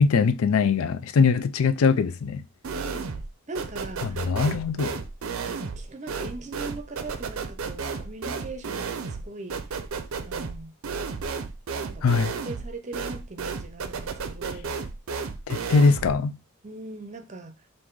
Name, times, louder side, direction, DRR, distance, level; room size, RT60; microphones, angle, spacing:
voice 1, 0.0-2.4 4.0-4.9 12.0-12.3 15.5-16.4, left 5 dB, 85° left, 0.4 m, -21 dB
sound 1, 2.6-3.3 3.6-16.2, right 5 dB, 75° right, 0.5 m, -33 dB
voice 2, 2.7-4.2 5.4-9.6 10.3-10.7 11.8-12.2 12.4-14.7 16.6-17.6, right 3 dB, 35° right, 0.6 m, -40 dB
3.7 x 2.6 x 4.6 m
head